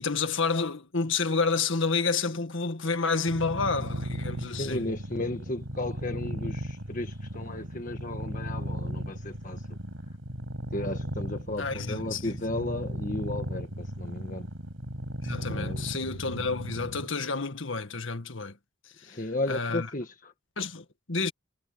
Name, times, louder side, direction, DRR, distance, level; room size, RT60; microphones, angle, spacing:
voice 1, 0.0-4.8 11.6-12.3 15.2-18.6 19.1-19.2 19.5-19.9 20.6-21.3, left 4 dB, 70° left, 1.8 m, -29 dB
sound 1, 3.3-17.1, equal, 85° right, 6.1 m, -36 dB
voice 2, 4.4-9.7 10.7-14.5 15.5-15.9 19.0-20.3, left 2 dB, 40° left, 1.5 m, -34 dB
head